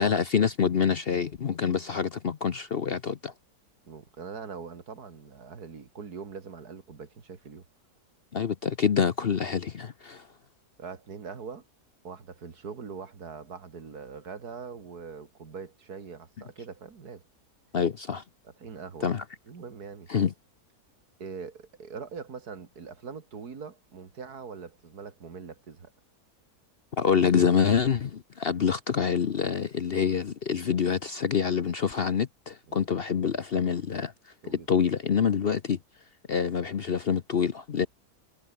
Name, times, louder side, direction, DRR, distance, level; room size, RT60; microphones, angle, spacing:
voice 1, 0.0-3.3 8.3-10.3 17.7-18.2 19.0-19.2 20.1-20.3 27.0-34.1 34.5-35.8 36.3-37.9, left 7 dB, 45° left, 0.8 m, -26 dB
voice 2, 3.8-7.6 10.8-11.7 12.0-17.2 18.4-19.2 19.5-20.1 21.2-25.9 32.7-32.9 34.4-34.7, right 5 dB, 75° right, 2.7 m, -42 dB
omnidirectional pair, 1.7 m